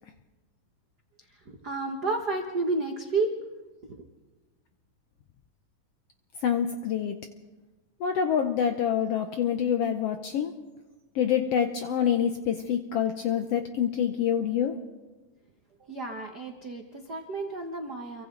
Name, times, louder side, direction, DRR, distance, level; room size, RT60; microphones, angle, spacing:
voice 1, 1.5-3.3 3.9-4.0 15.9-18.2, right 3 dB, 80° right, 3 dB, 0.9 m, -31 dB
voice 2, 6.4-7.2 8.0-10.5 11.1-14.8, left 8 dB, 90° left, 7 dB, 1.3 m, -26 dB
28.5 x 23.5 x 3.9 m, 1.3 s
omnidirectional pair, 3.9 m